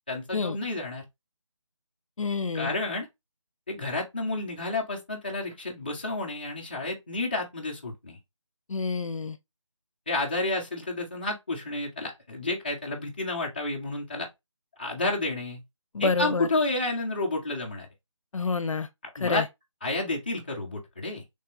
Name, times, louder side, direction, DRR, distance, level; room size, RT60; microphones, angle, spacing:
voice 1, 0.1-1.0 2.5-3.1 3.7-8.2 10.1-14.3 14.8-15.6 16.0-17.9 19.2-19.4 19.8-21.2, left 2 dB, 20° left, 0.6 m, -30 dB
voice 2, 2.2-2.7 8.7-9.4 15.9-16.5 18.3-18.9 19.2-19.5, left 4 dB, 85° left, 0.6 m, -28 dB
3.3 x 2.7 x 3.5 m
figure-of-eight pair, 170°, 16 cm